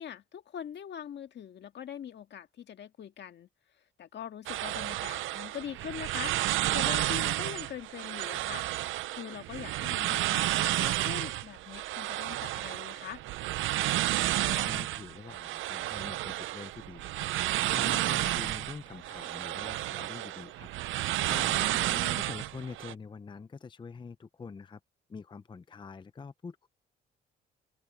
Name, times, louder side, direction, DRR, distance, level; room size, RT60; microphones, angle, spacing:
voice 1, 0.0-3.5 4.0-6.4 6.7-8.7 9.1-13.2 18.1-18.3 21.7-22.2, left 9 dB, 60° left, 1.9 m, -42 dB
sound 1, 4.5-22.9, right 15 dB, 80° right, 0.5 m, -31 dB
voice 2, 14.3-20.7 21.3-21.7 22.3-24.8 25.1-26.7, left 5 dB, 25° left, 0.6 m, -45 dB
open air
cardioid pair, 90°, 20 cm